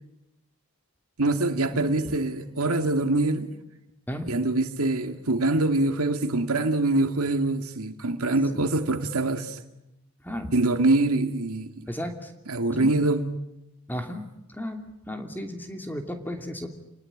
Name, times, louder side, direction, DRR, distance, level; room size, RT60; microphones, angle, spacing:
voice 1, 1.2-3.5 4.3-9.6 10.5-11.9 12.5-13.4, right 2 dB, 90° right, 2.3 m, -24 dB
voice 2, 11.9-12.3 12.8-12.9 13.9-14.2 14.5-16.7, equal, 10° left, 2.8 m, -34 dB
29.5 x 19.5 x 9.9 m
head